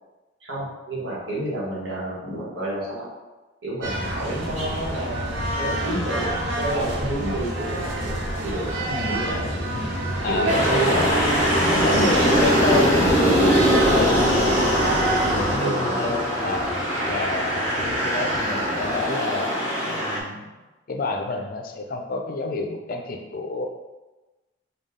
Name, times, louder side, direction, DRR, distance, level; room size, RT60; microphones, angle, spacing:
voice 1, 0.4-3.1 3.6-8.1 8.4-8.7 9.1-9.6 10.2-11.0 11.9-12.4 15.6-16.0, right 1 dB, 65° right, -6 dB, 1.4 m, -30 dB
sound 1, 3.8-15.6, right 1 dB, 90° right, 1.0 m, -27 dB
voice 2, 8.8-9.2 10.2-11.1 11.6-14.7 15.2-16.7 17.1-19.5 19.8-20.5 20.9-23.7, left 3 dB, 50° left, 3 dB, 0.5 m, -29 dB
sound 2, 9.1-19.1, right 1 dB, 30° right, 0.7 m, -43 dB
sound 3, 10.5-20.2, equal, 10° right, 0.9 m, -22 dB
5.3 x 2.3 x 3.6 m, 1.1 s
head